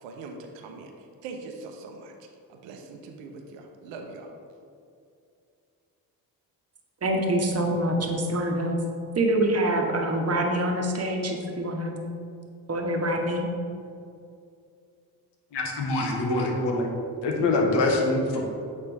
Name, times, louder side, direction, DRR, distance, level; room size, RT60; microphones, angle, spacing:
voice 1, 0.0-0.9 1.2-2.1 2.5-4.3, right 3 dB, 75° right, 3 dB, 0.9 m, -41 dB
voice 2, 7.0-8.8 9.1-12.0 12.7-13.5, right 1 dB, 35° right, 2 dB, 1.2 m, -25 dB
voice 3, 15.5-16.9 17.2-18.4, left 2 dB, 65° left, 1 dB, 1.3 m, -24 dB
8.3 x 4.2 x 3.5 m, 2.4 s
supercardioid pair, 60°, 45 cm